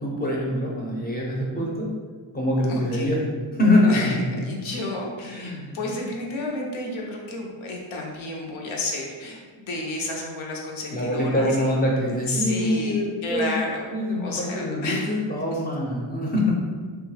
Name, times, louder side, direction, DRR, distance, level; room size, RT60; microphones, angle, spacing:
voice 1, 0.0-1.9 2.3-3.2 3.5-4.1 5.2-5.8 10.9-13.5 13.9-16.5, left 1 dB, 20° left, -3 dB, 0.6 m, -24 dB
voice 2, 2.7-3.2 3.9-11.6 12.3-13.9 14.2-15.1 15.5-15.6, left 2 dB, 80° left, -1 dB, 0.7 m, -31 dB
3.1 x 2.3 x 3.1 m, 1.5 s
wide cardioid pair, 115°, 47 cm